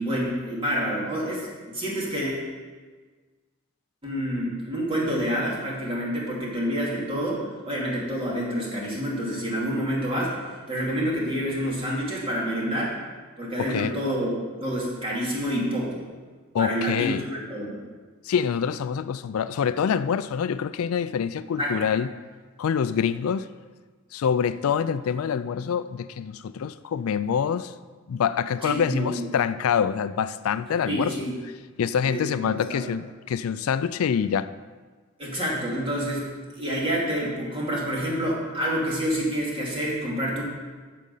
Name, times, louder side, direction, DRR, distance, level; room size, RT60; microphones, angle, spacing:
voice 1, 0.0-2.5 4.0-10.4 10.7-12.9 13.4-14.3 14.6-16.0 16.6-17.8 21.6-21.7 28.6-29.2 30.8-31.3 32.0-32.8 35.2-40.4, equal, 25° right, 2.7 m, -28 dB
voice 2, 13.6-14.0 16.5-17.2 18.3-22.1 22.6-23.5 24.1-27.7 28.1-31.1 31.8-34.5, left 7 dB, 80° left, 0.4 m, -26 dB
14.0 x 5.2 x 5.5 m
head